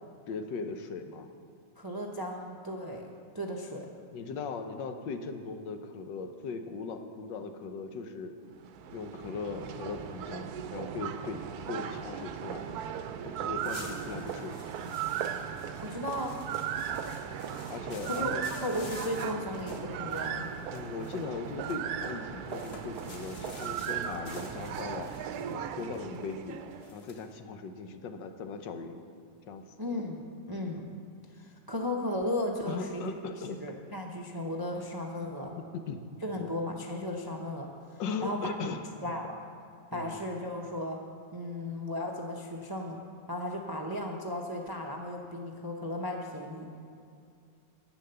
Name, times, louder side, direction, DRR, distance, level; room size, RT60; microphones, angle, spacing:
voice 1, 0.3-1.3 4.1-8.3 8.9-11.4 11.7-12.7 13.2-14.6 17.7-18.5 20.7-25.2 25.5-26.6 26.9-29.0 29.5-29.6 32.7-33.6 35.2-36.1 36.3-36.5 38.0-39.1 39.9-40.2, left 4 dB, 80° left, 7 dB, 1.5 m, -39 dB
voice 2, 1.8-3.1 3.3-3.9 13.3-13.5 15.8-16.4 18.0-20.5 29.8-30.2 30.5-30.8 31.3-33.0 33.6-35.5 36.2-38.5 39.0-39.4 39.9-41.0 41.3-43.0 43.3-46.8, left 1 dB, 30° right, 1 dB, 0.4 m, -35 dB
sound 1, 8.5-26.9, right 8 dB, 70° right, 1.0 m, -37 dB
sound 2, 13.2-13.3 13.6-22.1 22.5-27.3, left 4 dB, 45° left, 0.9 m, -51 dB
10.0 x 8.5 x 6.8 m, 2.4 s
omnidirectional pair, 1.9 m